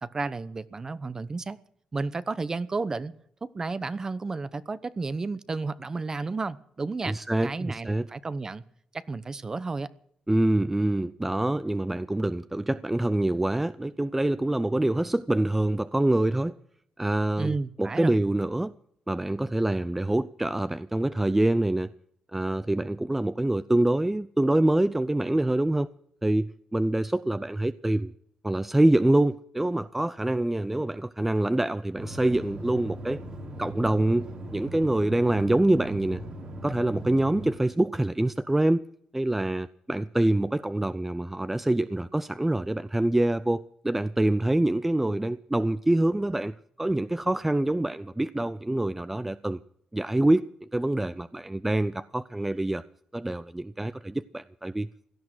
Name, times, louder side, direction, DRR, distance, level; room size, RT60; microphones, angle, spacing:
voice 1, 0.0-1.6 1.9-3.1 3.4-7.2 7.4-8.6 8.9-9.9 17.4-18.2, right 3 dB, 30° right, 0.9 m, -32 dB
voice 2, 7.1-8.1 10.3-16.6 17.0-18.7 19.1-21.9 22.3-25.9 26.2-28.1 28.4-33.2 33.6-34.3 34.5-36.2 36.6-38.9 39.1-49.6 49.9-52.8 53.1-54.9, right 1 dB, 10° right, 0.5 m, -25 dB
sound 1, 32.0-37.5, right 1 dB, 50° right, 3.6 m, -39 dB
17.5 x 13.0 x 6.2 m
cardioid pair, 105°, 2 cm